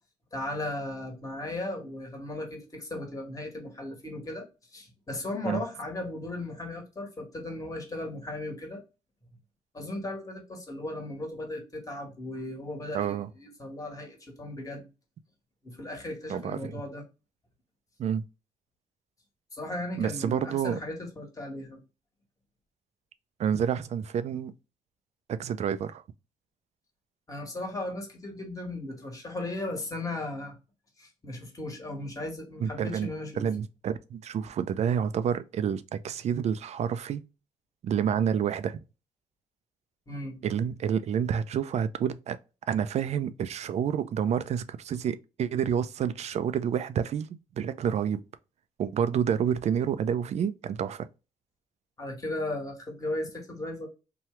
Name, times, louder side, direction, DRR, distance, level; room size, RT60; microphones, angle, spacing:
voice 1, 0.3-4.4 4.7-8.8 9.7-14.9 15.6-17.0 19.5-21.8 27.3-30.5 31.0-33.5 40.1-40.4 52.0-53.9, left 1 dB, 25° left, 1.4 m, -36 dB
voice 2, 12.9-13.3 16.3-16.8 18.0-18.2 20.0-20.8 23.4-24.5 25.3-26.0 32.6-33.1 33.4-37.2 37.8-38.8 40.4-42.4 42.7-47.3 47.6-48.2 48.8-51.1, right 8 dB, 55° right, 0.4 m, -29 dB
2.9 x 2.3 x 3.1 m
cardioid pair, 80°, 13 cm